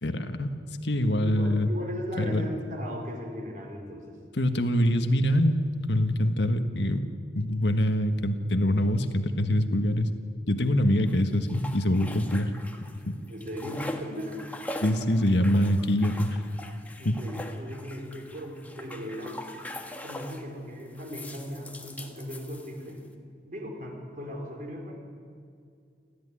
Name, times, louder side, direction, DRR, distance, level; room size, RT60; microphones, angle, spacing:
voice 1, 0.0-0.5 0.8-1.7 2.2-2.5 4.3-5.6 5.9-7.1 7.3-10.1 10.5-12.5 13.1-13.2 14.8-16.4 17.0-17.2, left 1 dB, 75° left, 7 dB, 1.6 m, -24 dB
voice 2, 1.2-4.2 13.2-14.5 17.0-19.6 20.0-23.0 23.4-24.9, equal, 45° right, 1 dB, 4.9 m, -37 dB
sound 1, 11.1-13.0 13.3-20.5 21.0-23.0, left 1 dB, 10° left, 1.6 m, -41 dB
29.0 x 14.0 x 9.9 m, 2.3 s
head